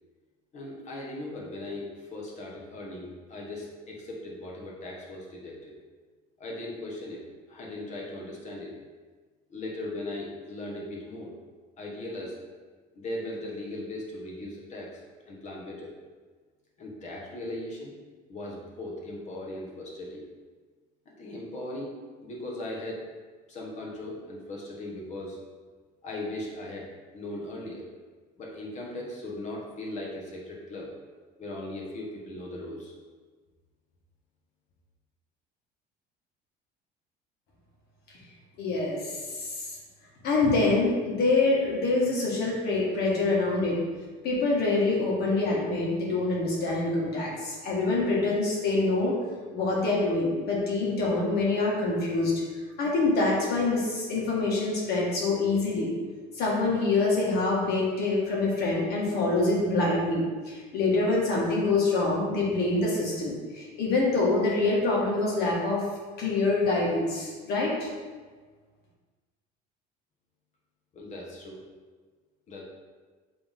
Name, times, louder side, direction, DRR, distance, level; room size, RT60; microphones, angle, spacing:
voice 1, 0.5-5.7 6.4-7.2 7.5-8.7 9.5-11.3 11.8-12.4 12.9-15.0 15.3-15.9 16.8-17.9 18.3-20.2 21.2-21.9 22.2-23.0 23.5-25.4 26.0-27.9 28.4-30.9 31.4-32.9 70.9-71.6 72.5-72.6, left 1 dB, 35° left, -2 dB, 1.4 m, -38 dB
voice 2, 38.6-39.6 40.2-43.8 44.2-49.2 49.5-52.3 52.8-55.9 56.3-65.8 66.2-67.9, left 3 dB, 55° left, -4 dB, 1.8 m, -25 dB
7.9 x 3.5 x 3.6 m, 1.4 s
cardioid pair, 145°, 20 cm